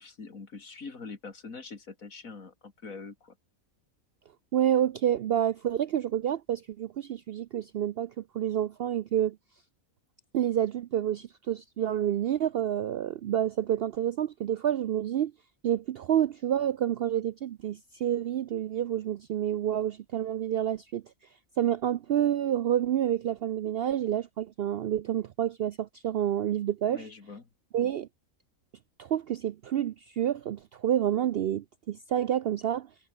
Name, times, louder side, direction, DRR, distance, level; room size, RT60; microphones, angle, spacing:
voice 1, 0.0-3.3 26.9-27.4, left 4 dB, 75° left, 3.0 m, -44 dB
voice 2, 4.5-9.4 10.3-15.3 15.6-21.0 21.6-27.1 27.7-28.1 29.0-32.9, right 10 dB, 65° right, 0.6 m, -28 dB
omnidirectional pair, 1.5 m